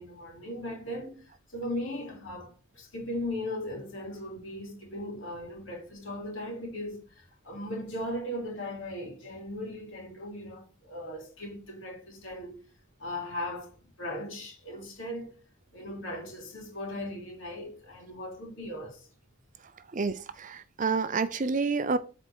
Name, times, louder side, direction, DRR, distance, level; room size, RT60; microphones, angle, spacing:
voice 1, 0.0-12.6 13.0-15.3 15.7-19.1, left 1 dB, 60° left, 3.2 m, -38 dB
voice 2, 19.9-22.0, right 4 dB, 35° right, 0.5 m, -29 dB
8.0 x 4.3 x 4.5 m
head